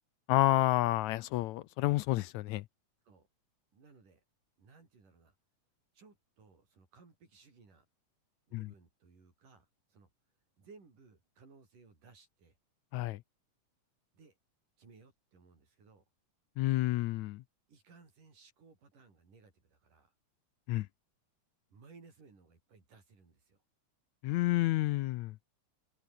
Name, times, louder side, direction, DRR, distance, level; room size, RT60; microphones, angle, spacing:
voice 1, 0.3-2.6 8.5-8.7 12.9-13.2 16.6-17.4 20.7-20.9 24.2-25.3, left 17 dB, 80° left, 1.8 m, -29 dB
voice 2, 3.7-4.2 4.6-5.4 5.9-7.9 8.5-10.1 10.6-12.6 14.1-14.4 14.8-16.0 17.7-20.1 21.7-23.6, right 4 dB, 90° right, 7.8 m, -60 dB
open air
omnidirectional pair, 3.6 m